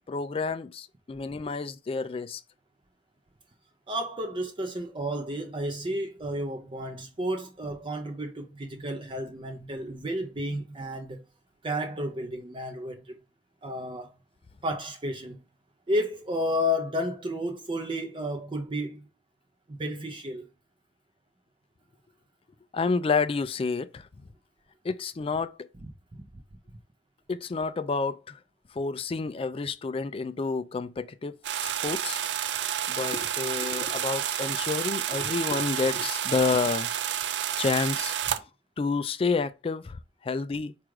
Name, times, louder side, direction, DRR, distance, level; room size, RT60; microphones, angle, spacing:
voice 1, 0.1-2.4 22.7-24.1 24.8-25.7 27.3-28.4 28.7-32.2 32.9-36.9 37.6-38.1 38.8-40.7, left 4 dB, 30° left, 0.3 m, -29 dB
voice 2, 3.9-11.2 11.6-13.2 13.6-14.1 14.6-15.4 15.9-19.1 19.7-20.5 25.8-26.2, equal, 30° right, 0.6 m, -32 dB
sound 1, 31.4-38.4, right 10 dB, 75° right, 0.4 m, -30 dB
4.7 x 2.5 x 4.6 m
head